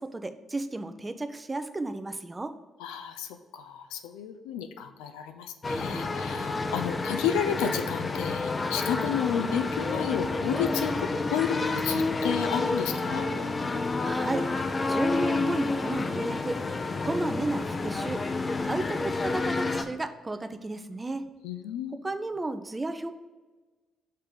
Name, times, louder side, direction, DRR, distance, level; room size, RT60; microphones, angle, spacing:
voice 1, 0.0-2.5 14.0-14.5 14.9-16.6 17.0-18.3 18.7-21.2 21.9-23.1, right 2 dB, 25° right, 9 dB, 0.6 m, -33 dB
voice 2, 2.8-13.2 21.4-22.1, left 8 dB, 75° left, 7 dB, 0.4 m, -32 dB
sound 1, 5.6-19.8, left 3 dB, 35° left, 0.6 m, -29 dB
sound 2, 9.5-10.0 10.6-11.5 12.2-12.4 13.2-14.3 14.7-14.8 15.2-16.5 17.7-19.5 19.9-20.1 21.2-21.4, right 3 dB, 65° right, 1.1 m, -52 dB
6.6 x 3.3 x 5.2 m, 1.3 s
hypercardioid pair, 45°, 0 cm